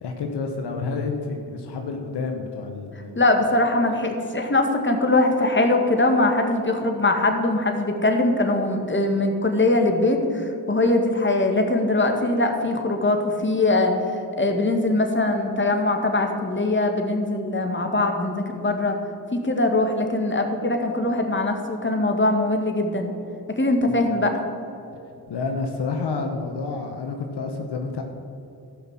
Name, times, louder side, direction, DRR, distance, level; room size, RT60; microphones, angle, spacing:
voice 1, 0.0-3.2 23.9-24.0 25.3-28.0, left 4 dB, 75° left, 4 dB, 1.1 m, -29 dB
voice 2, 3.2-13.9 14.4-19.0 19.3-23.1 23.6-24.4, left 2 dB, 30° left, 4 dB, 2.0 m, -22 dB
13.0 x 6.1 x 7.5 m, 2.8 s
supercardioid pair, 45°, 41 cm